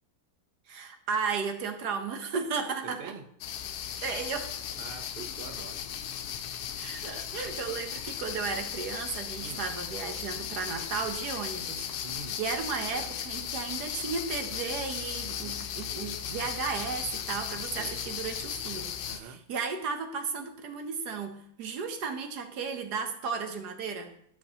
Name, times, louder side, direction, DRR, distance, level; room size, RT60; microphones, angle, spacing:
voice 1, 0.7-3.1 4.0-4.5 6.7-11.9 12.4-24.1, right 5 dB, 80° right, 6 dB, 1.5 m, -34 dB
voice 2, 2.8-3.3 4.8-5.9 9.4-9.7 12.0-12.4 17.8-18.0 19.0-19.5, right 5 dB, 55° right, 8 dB, 0.6 m, -45 dB
sound 1, 3.4-19.2, left 9 dB, 75° left, 1.2 m, -36 dB
12.5 x 6.0 x 2.9 m, 0.72 s
omnidirectional pair, 1.7 m